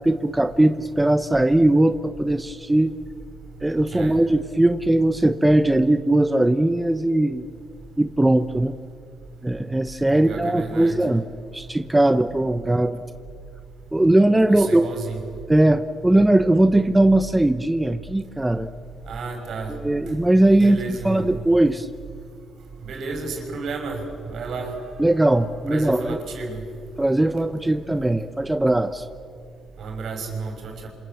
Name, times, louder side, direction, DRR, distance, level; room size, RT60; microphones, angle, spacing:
voice 1, 0.0-2.9 3.6-7.5 8.0-8.7 9.4-11.3 11.5-13.0 13.9-14.8 15.5-18.7 19.7-21.9 25.0-26.2 27.0-29.1, right 1 dB, 10° right, 9 dB, 0.9 m, -19 dB
voice 2, 10.1-11.0 14.5-15.2 19.1-19.7 20.6-21.3 22.8-24.7 25.7-26.6 29.8-30.9, right 4 dB, 65° right, 3 dB, 6.3 m, -32 dB
28.5 x 27.0 x 7.9 m, 2.3 s
cardioid pair, 90°, 0 cm